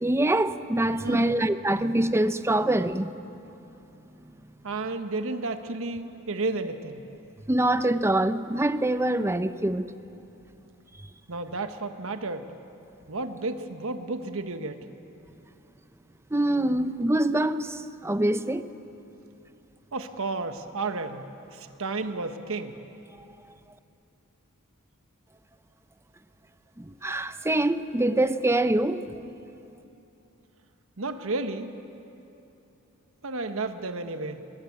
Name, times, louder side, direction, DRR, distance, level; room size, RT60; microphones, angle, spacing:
voice 1, 0.0-3.1 7.5-9.9 16.3-18.6 26.8-29.2, right 1 dB, 10° right, 0.6 m, -24 dB
voice 2, 1.0-1.3 4.6-7.0 11.3-12.5 13.1-14.8 19.9-21.3 21.5-22.8 31.0-31.7 33.2-34.4, right 3 dB, 65° right, 1.2 m, -32 dB
21.5 x 21.0 x 8.6 m
head